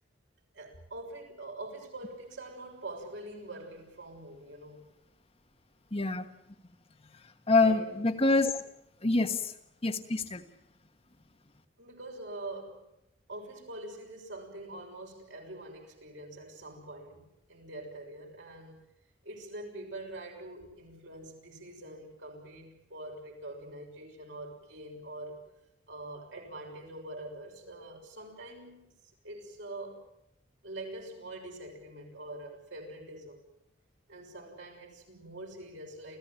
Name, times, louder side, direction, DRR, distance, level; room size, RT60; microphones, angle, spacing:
voice 1, 0.5-4.8 7.6-8.0 10.1-10.2 11.8-12.9 13.3-18.8 19.2-25.4 25.9-28.9 29.2-30.0 30.6-33.4 34.1-36.2, right 2 dB, 70° right, 6.7 m, -44 dB
voice 2, 5.9-6.3 7.5-8.5 9.0-9.4 9.8-10.4, left 3 dB, 30° left, 1.3 m, -25 dB
29.0 x 15.5 x 9.0 m
head